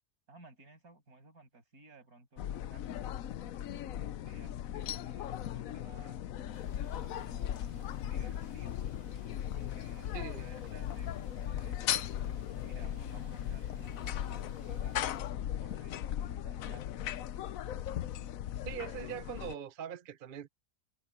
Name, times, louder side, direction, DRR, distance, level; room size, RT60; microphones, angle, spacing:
voice 1, 0.3-3.2 4.2-6.2 8.0-8.9 9.5-12.1 12.6-15.0 15.6-16.9, right 2 dB, 65° right, 7.7 m, -57 dB
sound 1, 2.4-19.5, left 11 dB, 65° left, 1.0 m, -38 dB
sound 2, 6.5-15.3, right 2 dB, 25° right, 2.2 m, -57 dB
voice 2, 10.1-10.5 18.6-20.5, right 9 dB, 45° right, 0.7 m, -42 dB
omnidirectional pair, 1.7 m